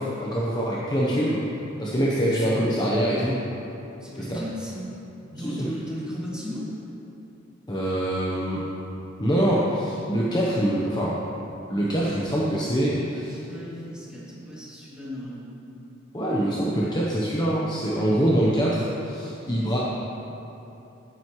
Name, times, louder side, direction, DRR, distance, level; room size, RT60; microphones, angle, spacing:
voice 1, 0.0-1.5 1.8-3.4 4.2-4.4 5.4-5.7 7.7-8.6 9.2-11.2 11.7-13.4 16.1-19.8, right 1 dB, 20° left, -6 dB, 1.0 m, -24 dB
voice 2, 2.2-2.5 4.0-4.9 5.3-6.8 13.1-15.6 19.6-19.8, equal, 5° right, -9 dB, 2.7 m, -36 dB
14.0 x 9.2 x 3.2 m, 2.9 s
head